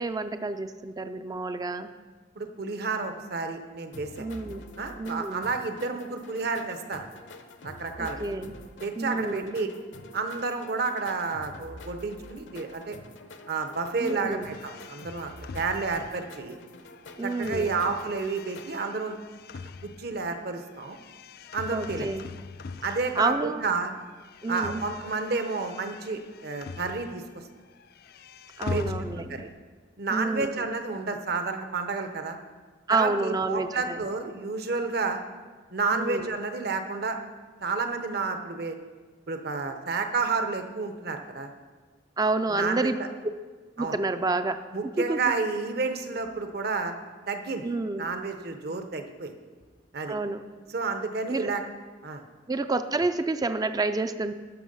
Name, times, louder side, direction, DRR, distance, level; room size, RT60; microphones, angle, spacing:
voice 1, 0.0-1.9 4.2-4.7 5.0-5.5 8.0-8.5 9.0-9.6 14.0-14.5 17.2-17.8 21.7-22.3 23.2-23.7 24.4-24.8 28.6-29.4 30.1-30.7 32.9-34.0 35.9-36.4 42.2-42.9 43.8-44.6 44.8-45.3 47.6-48.1 50.1-50.4 51.3-51.5 52.5-54.3, right 3 dB, 20° right, 10 dB, 0.4 m, -29 dB
voice 2, 2.4-4.3 4.8-7.1 7.6-8.2 8.8-9.7 10.1-13.0 13.5-16.6 17.2-19.2 19.8-21.0 21.5-22.1 22.8-23.9 24.5-27.2 28.7-28.9 29.3-29.5 30.0-32.4 32.9-35.2 35.7-37.2 37.6-38.8 39.3-41.5 42.5-42.9 43.8-44.0 44.7-46.9 47.3-49.3 49.9-50.2 50.7-51.6 52.0-52.2, right 4 dB, 60° right, 6 dB, 0.9 m, -30 dB
sound 1, 3.9-18.7, left 2 dB, 75° left, 0.8 m, -47 dB
sound 2, 14.4-23.7 24.0-27.4 27.7-29.6, left 4 dB, 55° left, 0.4 m, -42 dB
12.0 x 6.5 x 5.5 m, 1.4 s
head